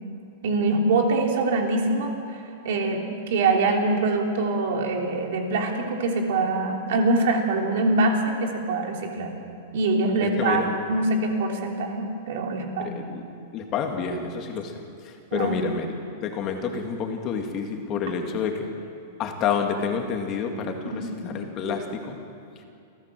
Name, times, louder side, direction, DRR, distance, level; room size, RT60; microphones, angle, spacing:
voice 1, 0.4-2.1 2.6-9.3 9.7-13.0 15.3-15.6 20.9-21.0, right 2 dB, 65° right, 2 dB, 3.4 m, -24 dB
voice 2, 10.2-10.8 12.8-13.2 13.5-15.9 16.2-18.7 19.2-22.2, left 6 dB, 30° left, 3 dB, 2.1 m, -29 dB
28.0 x 14.5 x 7.7 m, 2.5 s
supercardioid pair, 155°, 0 cm